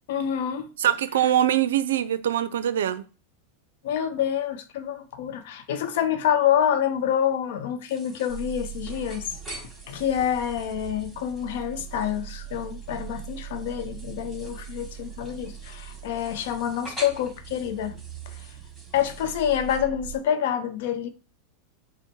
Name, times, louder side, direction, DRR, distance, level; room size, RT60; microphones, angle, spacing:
voice 1, 0.1-0.7 3.8-18.0 18.3-18.5 18.9-21.1, left 9 dB, 70° left, 0.6 m, -27 dB
voice 2, 0.8-3.0, right 11 dB, 80° right, 0.4 m, -23 dB
sound 1, 7.9-19.8, equal, 5° left, 2.1 m, -46 dB
sound 2, 8.3-20.2, right 11 dB, 45° right, 0.7 m, -41 dB
4.3 x 2.1 x 4.4 m
hypercardioid pair, 105°, 0 cm